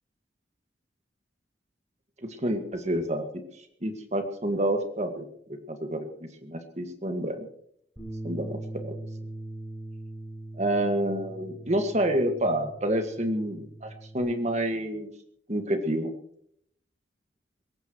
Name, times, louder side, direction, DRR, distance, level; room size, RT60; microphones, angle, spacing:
voice 1, 2.4-3.2 3.8-5.3 5.7-7.5 8.2-9.0 10.6-15.1 15.5-16.1, right 1 dB, 40° right, 5 dB, 1.8 m, -28 dB
Bass guitar, 8.0-14.2, right 1 dB, 10° right, 7.2 m, -41 dB
21.0 x 17.5 x 3.1 m, 0.70 s
head